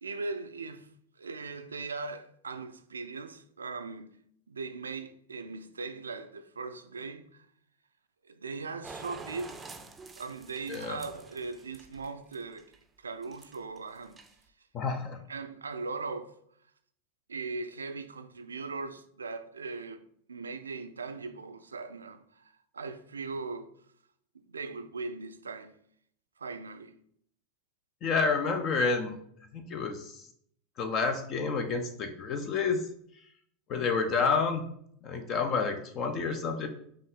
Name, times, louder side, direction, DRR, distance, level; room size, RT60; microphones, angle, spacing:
voice 1, 0.0-0.9 1.2-4.2 4.5-7.5 8.2-9.6 10.2-14.2 15.3-16.4 17.3-20.0 20.3-23.7 24.5-25.7 26.4-27.0, right 4 dB, 80° right, 0.3 m, -39 dB
sound 1, 8.8-12.8 13.2-13.8 14.0-14.5, right 3 dB, 15° right, 0.5 m, -47 dB
voice 2, 10.7-11.0 14.7-15.2 28.0-29.2 29.5-30.2 30.8-32.8 33.7-34.7 35.0-36.7, left 4 dB, 40° left, 0.6 m, -29 dB
5.3 x 2.5 x 3.6 m
figure-of-eight pair, 85°, 0 cm